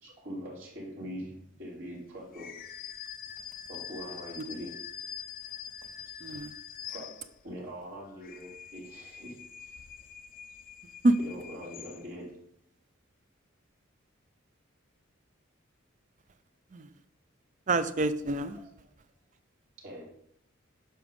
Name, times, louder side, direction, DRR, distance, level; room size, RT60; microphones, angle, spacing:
voice 1, 0.0-2.5 3.7-4.8 6.8-9.7 11.2-12.3 18.5-18.6 19.8-20.0, equal, 75° right, -6 dB, 3.1 m, -43 dB
sound 1, 2.3-7.6 8.1-12.3, left 8 dB, 45° left, 0.5 m, -45 dB
voice 2, 6.2-6.5 11.0-11.2 16.7-16.9 17.7-18.6, right 2 dB, 35° right, 12 dB, 0.4 m, -26 dB
8.8 x 5.9 x 3.7 m, 0.73 s
head